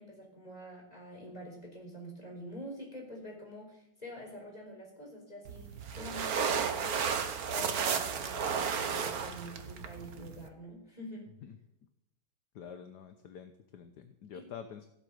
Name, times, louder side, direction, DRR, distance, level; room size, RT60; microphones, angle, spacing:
voice 1, 0.0-7.0 7.5-11.3 14.3-14.5, equal, 20° left, 0 dB, 4.5 m, -46 dB
sound 1, 5.4-10.5, right 6 dB, 55° right, 1.5 m, -33 dB
voice 2, 12.5-14.9, left 7 dB, 65° left, 8 dB, 1.5 m, -47 dB
16.0 x 8.1 x 7.9 m, 0.87 s
omnidirectional pair, 2.1 m